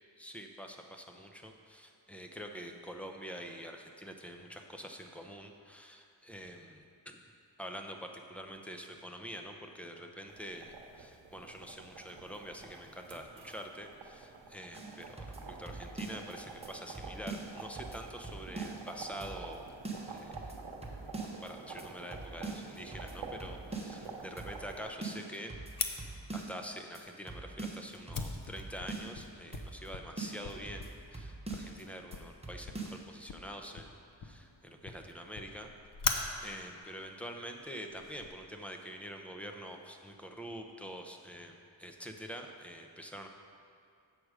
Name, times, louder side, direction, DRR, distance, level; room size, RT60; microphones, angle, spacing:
voice 1, 0.2-7.2 7.6-19.7 20.1-20.6 21.4-25.5 26.3-35.7 36.4-43.3, equal, 5° left, 3 dB, 0.6 m, -46 dB
sound 1, 10.3-25.0, right 4 dB, 75° right, 1.0 m, -48 dB
sound 2, 14.7-16.3 16.6-16.7 16.9-18.9 19.2-19.6 19.8-21.5 21.8-21.9 22.1-24.1 24.4-24.7 25.0-26.7 26.9-27.0 27.3-29.2 29.5-29.9 30.2-31.8 32.1-32.2 32.4-33.0, right 3 dB, 15° right, 1.0 m, -43 dB
Fire, 25.8-38.3, left 5 dB, 45° left, 0.7 m, -42 dB
7.8 x 6.3 x 4.8 m, 2.5 s
wide cardioid pair, 95°, 47 cm